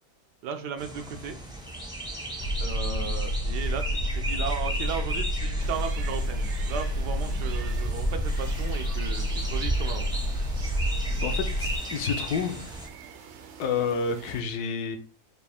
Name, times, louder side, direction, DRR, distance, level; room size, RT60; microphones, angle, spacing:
voice 1, 0.4-1.4 2.6-10.1, right 6 dB, 90° right, 1.3 m, -35 dB
sound 1, 0.8-12.9, right 1 dB, 5° right, 0.4 m, -35 dB
sound 2, 2.4-11.8, equal, 45° left, 0.6 m, -29 dB
voice 2, 2.7-3.2 11.2-12.7 13.6-15.0, left 5 dB, 75° left, 1.2 m, -30 dB
sound 3, 5.6-14.4, right 6 dB, 65° right, 0.7 m, -46 dB
5.0 x 2.5 x 3.4 m
omnidirectional pair, 1.7 m